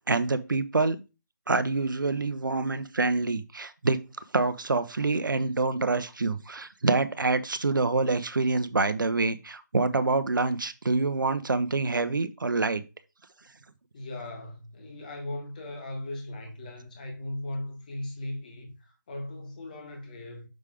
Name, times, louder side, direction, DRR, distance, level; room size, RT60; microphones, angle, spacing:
voice 1, 0.1-1.0 1.5-4.0 4.3-12.8, right 3 dB, 80° right, 0.9 m, -26 dB
voice 2, 13.9-20.5, left 1 dB, 25° left, 1.6 m, -38 dB
6.5 x 3.6 x 4.9 m
figure-of-eight pair, 170°, 11 cm